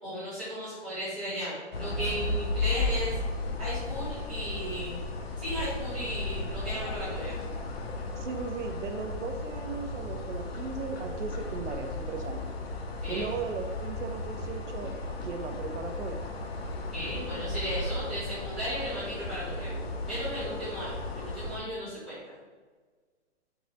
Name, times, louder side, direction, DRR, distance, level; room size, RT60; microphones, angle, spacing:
voice 1, 0.0-3.2 3.6-5.0 5.4-7.3 13.0-13.3 16.9-19.7 20.1-22.3, equal, 5° left, -26 dB, 0.5 m, -35 dB
sound 1, 1.7-21.6, left 2 dB, 55° left, 0.6 m, -35 dB
voice 2, 8.2-12.5 13.1-16.2, right 5 dB, 85° right, 5 dB, 0.6 m, -37 dB
4.7 x 2.1 x 3.8 m, 1.4 s
hypercardioid pair, 170°, 36 cm